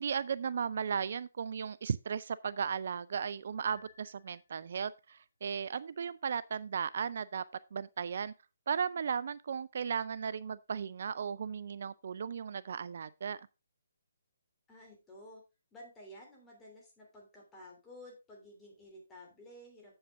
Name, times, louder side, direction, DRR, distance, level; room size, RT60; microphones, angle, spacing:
voice 1, 0.0-7.4 7.7-8.3 8.7-13.4, right 7 dB, 55° right, 0.3 m, -36 dB
Piano, 3.6-4.9, left 4 dB, 75° left, 2.8 m, -57 dB
voice 2, 14.7-15.4 15.7-19.9, left 1 dB, 15° left, 3.0 m, -53 dB
8.0 x 7.8 x 3.5 m
figure-of-eight pair, 140°, 0 cm